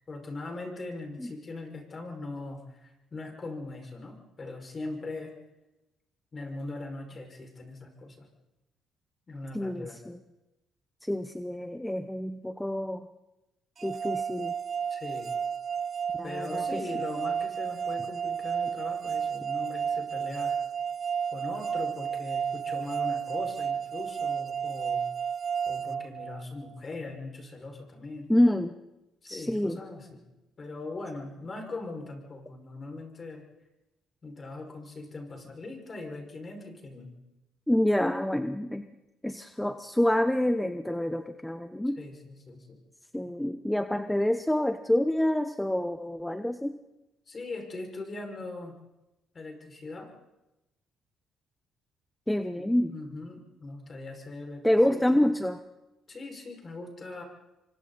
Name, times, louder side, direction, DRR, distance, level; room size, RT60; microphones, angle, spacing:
voice 1, 0.1-5.4 6.3-8.3 9.3-10.0 14.9-15.3 16.2-20.5 21.3-25.0 25.7-28.3 29.2-30.2 30.6-33.4 34.2-37.1 42.0-42.8 47.3-48.8 49.3-50.1 52.5-54.8 55.1-55.2 56.1-57.2, left 2 dB, 35° left, 2 dB, 5.9 m, -40 dB
voice 2, 9.5-10.2 11.0-13.1 13.8-14.5 16.2-16.8 28.3-28.7 29.3-29.8 37.7-38.9 39.2-42.0 43.1-46.8 52.3-52.9 54.6-55.6, left 1 dB, 5° left, 9 dB, 0.9 m, -27 dB
sound 1, 13.8-26.7, right 7 dB, 45° right, 0.7 m, -32 dB
29.0 x 24.5 x 4.2 m, 0.98 s
cardioid pair, 95°, 0 cm